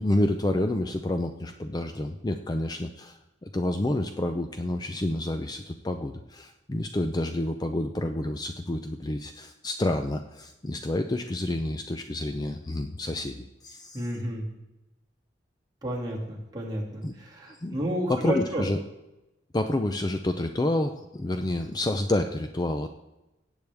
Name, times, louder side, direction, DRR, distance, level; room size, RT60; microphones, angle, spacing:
voice 1, 0.0-3.2 3.4-14.0 17.0-17.1 17.5-17.8 18.1-18.8 19.5-22.9, left 1 dB, 20° left, 7 dB, 0.5 m, -29 dB
voice 2, 13.9-14.4 15.8-18.7, equal, 20° right, -3 dB, 2.4 m, -31 dB
17.5 x 8.1 x 3.5 m, 0.96 s
head